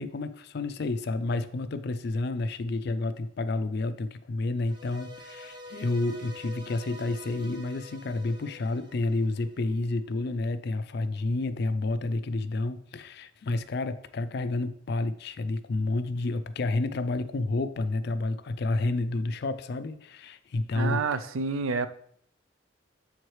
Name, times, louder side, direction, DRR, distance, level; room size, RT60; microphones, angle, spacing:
voice 1, 0.0-21.0, left 2 dB, 55° left, 0.4 m, -30 dB
sound 1, 4.6-9.9, left 1 dB, 20° right, 0.7 m, -47 dB
voice 2, 20.7-21.9, right 4 dB, 90° right, 0.5 m, -28 dB
7.2 x 4.6 x 3.1 m
head